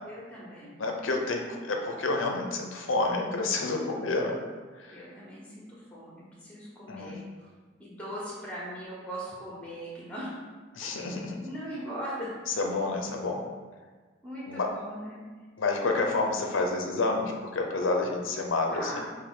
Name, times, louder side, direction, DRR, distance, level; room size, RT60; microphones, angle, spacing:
voice 1, 0.0-0.7 4.9-5.7 5.9-7.5 7.8-10.3 11.4-12.3 14.2-15.2 18.7-19.0, equal, 5° left, -5 dB, 1.1 m, -39 dB
voice 2, 0.8-4.4 4.8-5.1 6.9-7.2 10.7-11.4 12.5-13.4 14.5-14.7 15.6-19.0, left 3 dB, 85° left, 2 dB, 0.6 m, -29 dB
5.2 x 2.6 x 3.7 m, 1.4 s
head